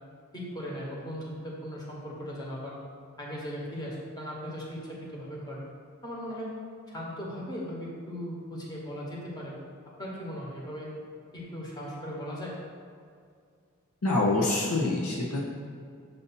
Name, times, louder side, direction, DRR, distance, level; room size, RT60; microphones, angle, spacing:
voice 1, 0.3-2.7 3.2-5.7 6.0-6.5 6.9-9.7 10.0-10.9 11.3-12.6, equal, 20° left, -4 dB, 1.0 m, -38 dB
voice 2, 14.0-15.5, left 2 dB, 90° left, -2 dB, 0.7 m, -26 dB
6.8 x 2.6 x 5.5 m, 2.2 s
head